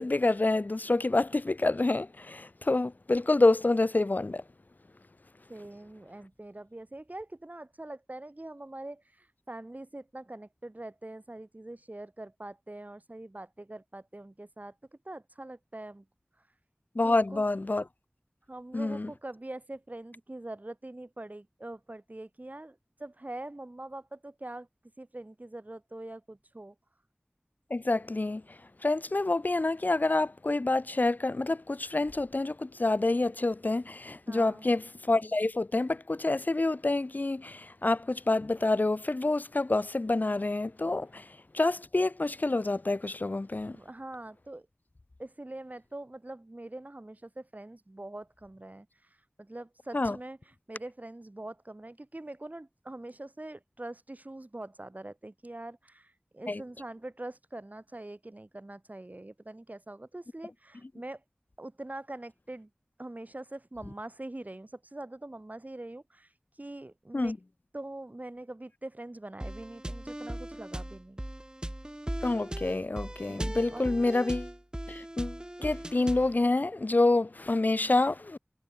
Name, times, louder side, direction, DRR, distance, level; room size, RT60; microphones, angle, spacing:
voice 1, 0.0-4.4 17.0-17.8 18.7-19.1 27.7-41.3 41.5-43.8 49.9-50.2 56.5-56.6 67.1-67.4 72.2-74.5 74.9-78.4, left 2 dB, 50° left, 0.5 m, -27 dB
voice 2, 5.5-14.7 15.1-16.0 17.0-17.4 18.5-24.7 25.0-26.7 34.3-34.6 43.7-44.7 45.2-48.9 49.4-50.4 50.7-61.2 61.6-62.7 63.0-66.3 66.6-67.3 67.7-71.2 73.3-73.9, right 1 dB, 45° right, 7.5 m, -43 dB
sound 1, 69.4-76.4, right 1 dB, 20° right, 3.5 m, -38 dB
wide cardioid pair, 45°, 4 cm